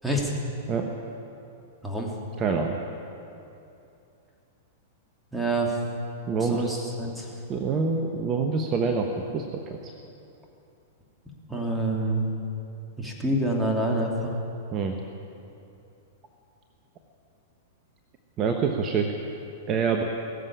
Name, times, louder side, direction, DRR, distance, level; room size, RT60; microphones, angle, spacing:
voice 1, 1.8-2.1 5.3-5.8 6.4-7.3 11.5-12.3 13.0-14.3, right 1 dB, 5° right, -2 dB, 2.8 m, -27 dB
voice 2, 2.4-2.8 6.3-6.8 7.5-9.1 9.3-9.9 14.7-14.9 18.4-19.1 19.7-20.0, right 5 dB, 35° right, 4 dB, 1.1 m, -26 dB
19.0 x 7.7 x 9.7 m, 2.7 s
hypercardioid pair, 105°, 0 cm